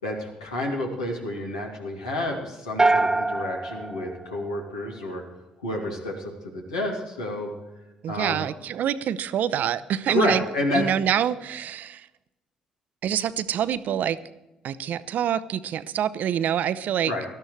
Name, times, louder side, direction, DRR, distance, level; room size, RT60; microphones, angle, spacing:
voice 1, 0.0-5.2 5.6-7.5 8.1-8.5 10.1-10.8 17.1-17.2, left 1 dB, 80° left, 0 dB, 2.4 m, -29 dB
sound 1, 2.8-5.1, right 2 dB, 15° right, 0.7 m, -25 dB
voice 2, 8.0-10.4 10.7-12.1 13.0-14.2 14.6-17.1, right 9 dB, 55° right, 15 dB, 0.6 m, -26 dB
18.5 x 13.0 x 3.2 m, 1.0 s
figure-of-eight pair, 45°, 3 cm